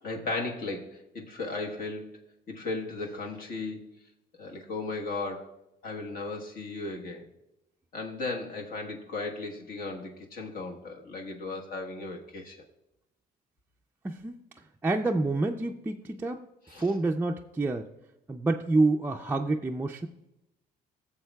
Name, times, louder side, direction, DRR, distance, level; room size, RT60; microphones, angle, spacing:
voice 1, 0.0-2.1 2.5-3.8 4.4-5.5 5.8-7.2 7.9-12.6 16.7-16.9, left 3 dB, 60° left, 1 dB, 1.3 m, -36 dB
voice 2, 14.0-14.4 14.8-16.5 16.8-17.9 18.3-20.1, right 2 dB, 10° right, 2 dB, 0.4 m, -28 dB
15.0 x 7.1 x 2.3 m, 0.92 s
cardioid pair, 110°, 17 cm